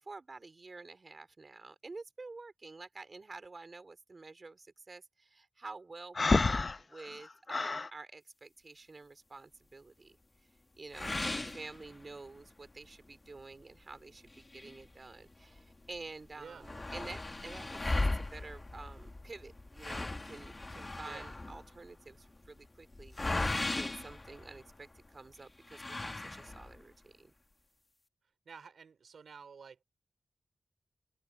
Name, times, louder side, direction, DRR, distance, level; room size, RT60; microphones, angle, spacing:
voice 1, 0.0-10.2 10.8-27.3, right 3 dB, 45° right, 2.7 m, -50 dB
Breathing, 6.2-7.9, left 3 dB, 45° left, 0.7 m, -29 dB
sound 1, 10.9-12.4 12.8-12.9 13.4-13.5 14.3-15.6 15.9-16.0 16.2-25.0 25.7-26.8, left 2 dB, 30° left, 1.6 m, -37 dB
voice 2, 11.2-11.6 16.4-17.0 21.0-21.4 28.4-29.8, right 6 dB, 85° right, 4.7 m, -52 dB
open air
wide cardioid pair, 80°, 0 cm